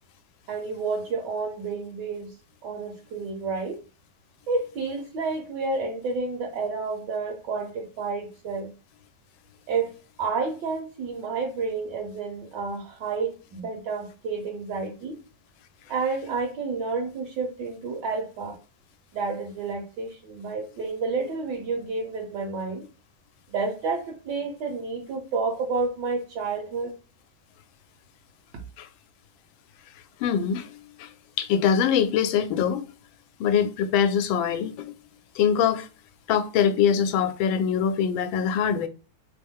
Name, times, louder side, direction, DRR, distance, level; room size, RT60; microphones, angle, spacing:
voice 1, 0.5-2.3 2.6-3.8 4.5-8.7 9.7-15.2 15.9-18.6 19.1-22.9 23.5-26.9, right 4 dB, 70° right, 1.4 m, -30 dB
voice 2, 30.2-30.7 31.0-31.1 31.4-32.9 33.4-34.9 35.3-35.9 36.3-38.9, left 8 dB, 85° left, 1.4 m, -23 dB
3.4 x 3.0 x 3.6 m
omnidirectional pair, 2.1 m